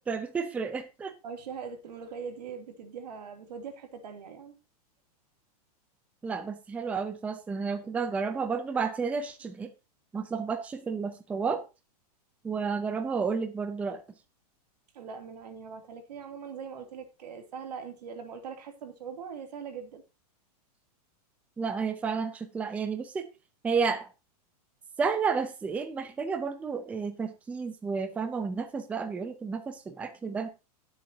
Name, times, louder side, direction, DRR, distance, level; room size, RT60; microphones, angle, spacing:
voice 1, 0.0-1.1 6.2-9.7 10.1-11.6 12.4-14.0 21.6-23.3 23.6-24.1 25.0-30.5, right 5 dB, 5° right, 0.6 m, -31 dB
voice 2, 1.2-4.5 14.9-20.0, right 6 dB, 90° right, 2.6 m, -41 dB
17.5 x 7.2 x 2.8 m
supercardioid pair, 165°, 20 cm